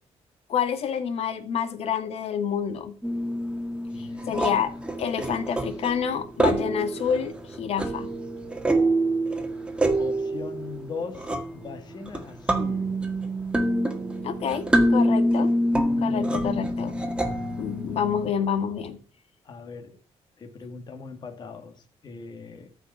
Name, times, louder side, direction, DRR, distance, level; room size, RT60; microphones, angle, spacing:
voice 1, 0.5-3.0 4.0-4.7 5.0-8.1 14.2-15.5 16.0-17.0 17.6-19.0, left 7 dB, 65° left, 2.0 m, -28 dB
sound 1, 3.0-18.3, right 1 dB, 10° right, 1.8 m, -26 dB
voice 2, 3.9-4.4 10.0-12.9 15.9-17.4 19.4-20.0 20.4-22.7, left 4 dB, 40° left, 2.0 m, -40 dB
14.0 x 5.4 x 7.1 m
cardioid pair, 145°, 11 cm